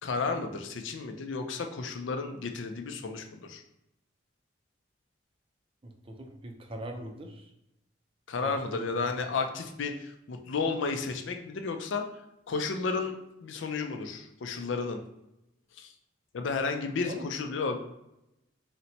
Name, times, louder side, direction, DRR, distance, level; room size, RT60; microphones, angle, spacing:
voice 1, 0.0-3.6 8.3-12.0 12.5-13.1 13.4-15.0 15.8-15.9 16.3-17.8, left 4 dB, 75° left, 6 dB, 0.5 m, -32 dB
voice 2, 5.8-7.5 8.4-9.1 17.0-17.3, right 1 dB, 30° right, 4 dB, 0.4 m, -42 dB
4.1 x 2.1 x 4.0 m, 0.88 s
head